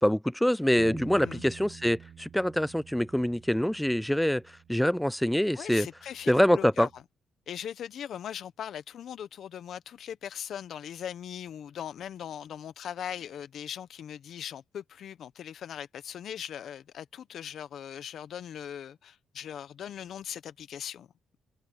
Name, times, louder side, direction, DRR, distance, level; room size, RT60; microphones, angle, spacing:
voice 1, 0.0-4.4 4.7-5.9 6.3-6.9, equal, 5° left, 0.4 m, -25 dB
Bass guitar, 0.8-7.0, right 8 dB, 55° right, 1.1 m, -50 dB
voice 2, 5.5-6.9 7.5-21.1, left 9 dB, 65° left, 1.1 m, -40 dB
open air
cardioid pair, 90°, 0 cm